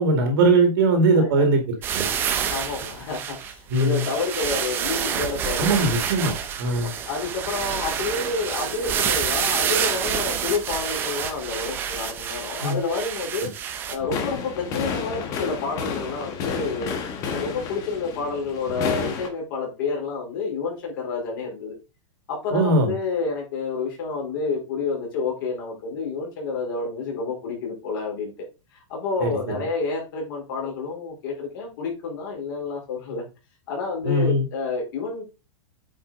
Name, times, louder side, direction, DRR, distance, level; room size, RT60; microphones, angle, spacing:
voice 1, 0.0-2.1 3.7-4.0 5.6-6.3 6.6-6.9 12.6-12.8 13.4-13.5 22.5-22.9 29.2-29.6 34.0-34.5, right 2 dB, 40° right, 5 dB, 2.3 m, -20 dB
voice 2, 1.1-1.4 2.5-5.7 6.2-6.4 6.6-13.5 13.9-17.0 17.3-21.8 22.3-28.3 28.7-33.2 33.7-35.3, left 4 dB, 40° left, 0 dB, 4.3 m, -29 dB
sound 1, 1.8-14.0, right 8 dB, 10° right, 0.6 m, -28 dB
sound 2, 14.0-19.3, left 6 dB, 20° left, 1.1 m, -31 dB
8.7 x 5.4 x 4.0 m, 0.28 s
supercardioid pair, 180°, 18 cm